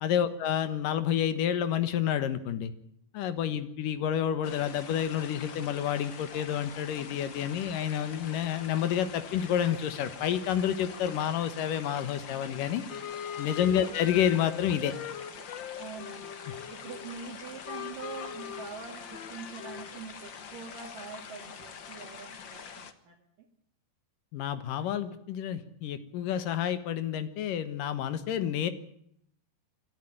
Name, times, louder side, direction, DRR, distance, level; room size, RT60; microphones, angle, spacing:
voice 1, 0.0-2.7 3.1-12.8 13.4-14.9 24.3-28.7, left 9 dB, 85° left, 12 dB, 3.0 m, -29 dB
sound 1, 4.4-22.9, left 7 dB, 45° left, 1.6 m, -45 dB
sound 2, 12.9-17.3 17.6-20.0, left 9 dB, 65° left, 1.1 m, -41 dB
voice 2, 15.8-16.3 16.7-23.5, right 6 dB, 90° right, -1 dB, 3.9 m, -44 dB
27.0 x 12.5 x 10.0 m, 0.71 s
omnidirectional pair, 3.7 m